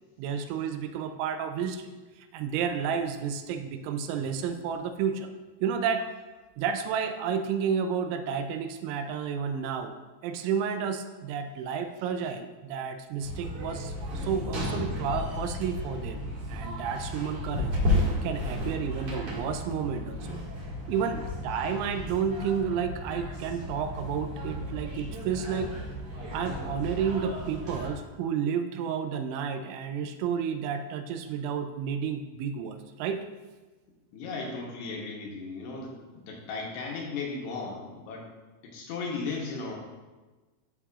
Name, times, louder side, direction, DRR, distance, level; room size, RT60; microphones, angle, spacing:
voice 1, 0.2-1.9 2.2-5.3 5.6-6.0 6.6-10.0 10.2-20.4 20.9-25.7 26.3-33.2, right 7 dB, 85° right, 7 dB, 3.0 m, -31 dB
sound 1, 13.2-27.9, left 1 dB, 55° right, 1.8 m, -33 dB
voice 2, 34.1-38.3 38.6-39.7, left 4 dB, 75° left, -2 dB, 2.8 m, -36 dB
12.5 x 4.7 x 2.4 m, 1.2 s
omnidirectional pair, 5.5 m